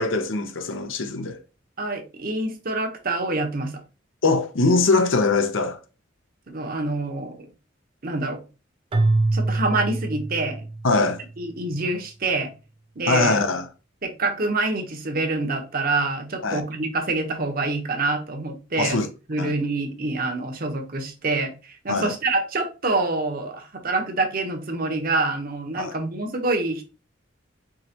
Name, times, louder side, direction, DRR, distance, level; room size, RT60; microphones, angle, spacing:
voice 1, 0.0-1.4 4.2-5.8 10.8-11.2 13.1-13.7 16.4-16.6 18.8-19.1 19.4-19.5 21.9-22.1 25.8-26.0, left 3 dB, 80° left, 0.7 m, -22 dB
voice 2, 1.8-3.7 6.5-7.4 8.0-8.4 9.3-10.6 11.4-12.5 13.0-13.4 14.0-19.0 19.3-26.8, right 2 dB, 50° right, 1.0 m, -26 dB
Keyboard (musical), 8.9-11.2, right 2 dB, 30° right, 0.4 m, -24 dB
4.8 x 3.1 x 2.9 m
head